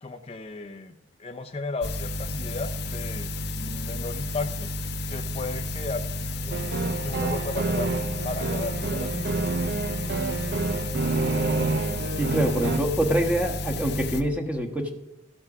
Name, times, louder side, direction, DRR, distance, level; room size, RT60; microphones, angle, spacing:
voice 1, 0.0-4.7 5.1-6.6 7.0-7.9 8.2-9.3, left 3 dB, 35° left, 4 dB, 0.6 m, -35 dB
sound 1, 1.8-14.2, left 1 dB, 65° left, 0.8 m, -32 dB
sound 2, 6.5-12.8, right 3 dB, 60° right, 0.6 m, -28 dB
voice 2, 12.2-14.9, right 1 dB, 10° right, 4 dB, 1.3 m, -25 dB
15.0 x 5.6 x 6.0 m, 0.90 s
head